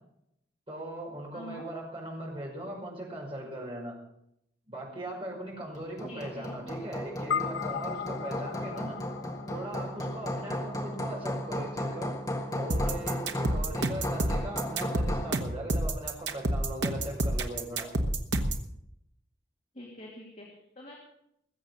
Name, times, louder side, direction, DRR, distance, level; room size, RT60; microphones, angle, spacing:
voice 1, 0.7-3.9 4.7-9.0 9.5-12.2 12.5-17.9, right 1 dB, 30° right, -2 dB, 5.4 m, -39 dB
voice 2, 1.3-1.7 6.0-6.5 19.7-21.0, equal, 40° left, -2 dB, 2.6 m, -46 dB
Hammer, 5.7-15.4, left 1 dB, 20° left, 1.6 m, -35 dB
sound 1, 7.3-11.9, left 8 dB, 80° left, 0.5 m, -37 dB
sound 2, 12.7-18.7, right 1 dB, 65° right, 1.3 m, -29 dB
20.5 x 7.6 x 6.6 m, 0.77 s
head